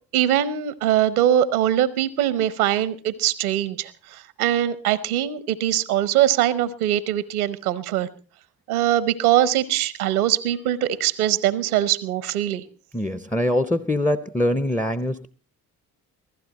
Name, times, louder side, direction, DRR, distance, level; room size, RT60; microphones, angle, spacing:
voice 1, 0.1-8.1 8.7-12.6, right 12 dB, 90° right, 0.9 m, -22 dB
voice 2, 12.9-15.3, left 1 dB, 5° left, 0.6 m, -23 dB
15.5 x 15.0 x 4.1 m
hypercardioid pair, 50°, 43 cm